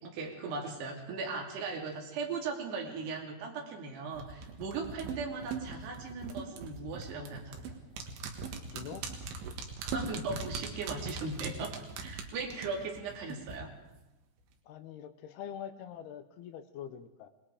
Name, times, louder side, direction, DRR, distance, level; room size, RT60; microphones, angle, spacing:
voice 1, 0.0-7.7 9.8-13.7, right 4 dB, 65° right, 0 dB, 4.9 m, -38 dB
sound 1, 4.1-13.6 13.9-14.0, right 5 dB, 85° right, 4.2 m, -40 dB
voice 2, 8.7-9.1 14.7-17.3, left 9 dB, 75° left, 9 dB, 2.6 m, -44 dB
26.5 x 20.0 x 5.0 m, 0.96 s
omnidirectional pair, 5.1 m